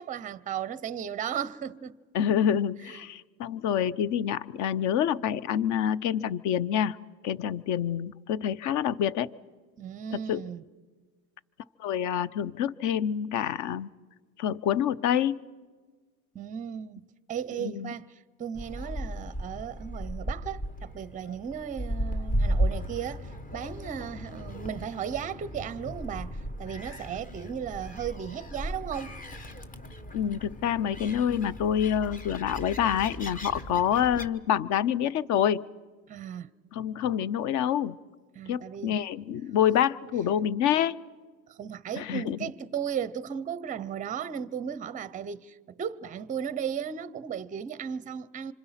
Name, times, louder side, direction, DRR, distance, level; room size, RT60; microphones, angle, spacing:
voice 1, 0.0-2.0 2.9-3.0 9.8-10.6 16.3-29.2 36.1-36.5 38.3-38.9 41.5-48.5, right 8 dB, 20° right, 0.6 m, -36 dB
voice 2, 2.1-7.0 7.2-9.3 10.3-10.4 11.8-13.9 14.4-15.4 17.6-17.9 30.1-35.6 36.7-38.0 38.5-41.0 42.0-42.5, left 9 dB, 45° left, 0.7 m, -27 dB
Gull seagull, 18.5-34.3, equal, 20° left, 1.0 m, -35 dB
26.5 x 25.5 x 5.7 m
supercardioid pair, 135°, 40 cm